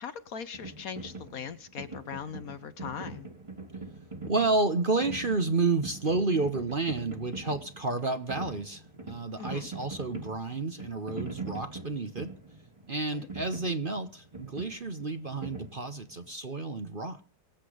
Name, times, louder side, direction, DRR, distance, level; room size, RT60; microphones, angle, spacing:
voice 1, 0.0-3.3 9.4-9.7 13.1-13.3, left 7 dB, 60° left, 1.3 m, -40 dB
sound 1, 0.5-16.3, right 3 dB, 20° right, 1.8 m, -43 dB
voice 2, 4.3-12.3 12.9-17.2, right 3 dB, 35° right, 1.1 m, -30 dB
23.5 x 8.3 x 5.1 m
omnidirectional pair, 1.9 m